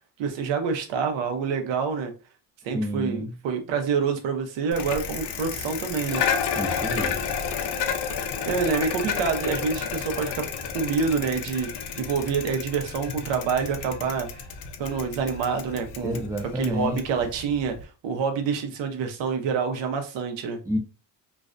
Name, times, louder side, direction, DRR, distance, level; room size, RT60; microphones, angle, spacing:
voice 1, 0.2-2.1 2.6-6.2 8.5-10.4 10.7-11.7 12.0-14.4 14.8-16.3 16.5-20.6, right 5 dB, 85° right, 0.7 m, -27 dB
voice 2, 2.7-3.3 6.5-7.2 16.0-17.0 20.7-20.8, equal, 10° right, 0.4 m, -29 dB
Bicycle, 4.7-17.8, left 6 dB, 70° left, 0.5 m, -31 dB
2.5 x 2.1 x 2.4 m
cardioid pair, 110°, 43 cm